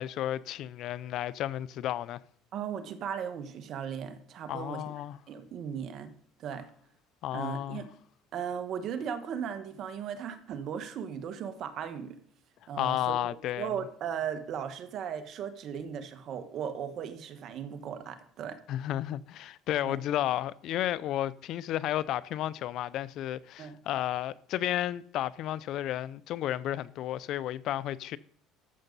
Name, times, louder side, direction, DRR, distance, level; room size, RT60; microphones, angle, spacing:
voice 1, 0.0-2.2 4.5-5.2 7.2-7.8 12.8-13.8 18.7-28.2, left 12 dB, 65° left, 0.5 m, -32 dB
voice 2, 2.5-5.0 5.3-6.1 6.4-6.7 7.3-7.9 8.3-12.2 12.7-13.2 13.6-18.6 19.8-20.0 23.6-23.8, right 8 dB, 55° right, 1.4 m, -37 dB
13.5 x 6.6 x 4.0 m
supercardioid pair, 95°, 0 cm